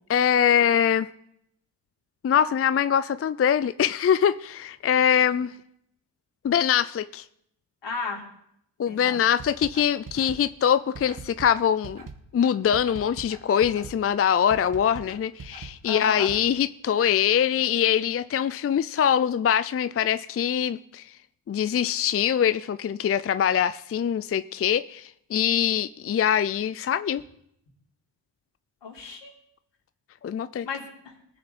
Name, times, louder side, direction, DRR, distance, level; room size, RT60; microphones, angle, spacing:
voice 1, 0.1-1.1 2.2-5.5 6.4-7.2 8.8-12.0 12.3-21.1 21.5-27.2 30.2-30.7, left 9 dB, 35° left, 0.4 m, -23 dB
voice 2, 7.8-8.2 8.8-9.2 15.8-16.3 28.8-29.3 30.6-31.1, left 4 dB, 75° left, 3.5 m, -34 dB
sound 1, 9.3-16.4, right 4 dB, 45° right, 1.5 m, -42 dB
19.0 x 6.9 x 4.2 m
cardioid pair, 60°, 44 cm